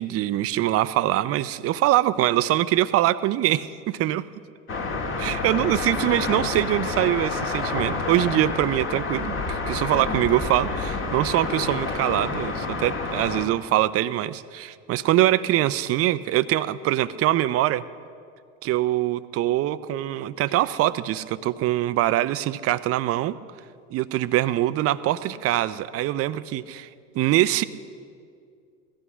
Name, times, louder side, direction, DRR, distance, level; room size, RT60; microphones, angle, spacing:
voice 1, 0.0-4.2 5.2-17.8 18.6-23.4 23.9-26.9 27.1-27.6, right 14 dB, 35° right, 16 dB, 0.6 m, -23 dB
sound 1, 4.7-13.5, left 3 dB, 30° left, 2.0 m, -29 dB
17.0 x 14.0 x 6.2 m, 2.3 s
hypercardioid pair, 80°, 40 cm